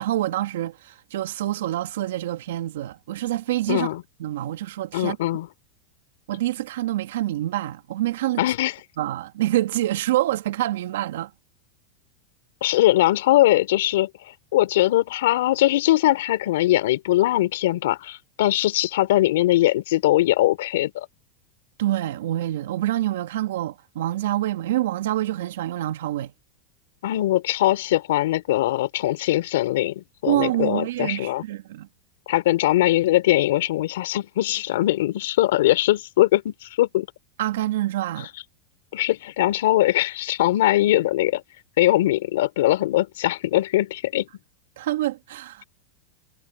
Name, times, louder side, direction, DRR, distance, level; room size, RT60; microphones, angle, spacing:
voice 1, 0.0-3.9 4.2-5.2 6.3-8.4 9.0-11.3 21.8-26.3 30.3-31.9 37.4-38.3 44.8-45.6, right 14 dB, 80° right, 1.8 m, -26 dB
voice 2, 3.7-4.0 4.9-5.5 8.4-8.7 12.6-14.1 14.5-21.1 27.0-31.4 32.3-37.1 38.9-41.4 41.8-44.3, left 15 dB, 80° left, 3.2 m, -21 dB
supercardioid pair, 120°, 0 cm